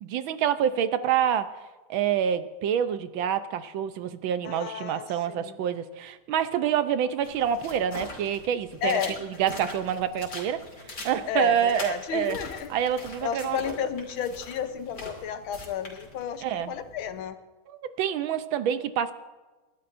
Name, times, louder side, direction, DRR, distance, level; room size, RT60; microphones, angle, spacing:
voice 1, 0.0-1.5 1.9-10.7 11.0-12.4 12.7-13.7 16.4-16.7 17.7-19.1, right 9 dB, 75° right, 11 dB, 1.5 m, -27 dB
voice 2, 4.4-5.5 8.8-9.2 11.3-12.7 13.2-17.4, left 8 dB, 75° left, 9 dB, 1.7 m, -32 dB
sound 1, 7.2-17.2, left 2 dB, 50° left, 3.2 m, -43 dB
29.0 x 12.5 x 2.6 m, 1.2 s
omnidirectional pair, 2.3 m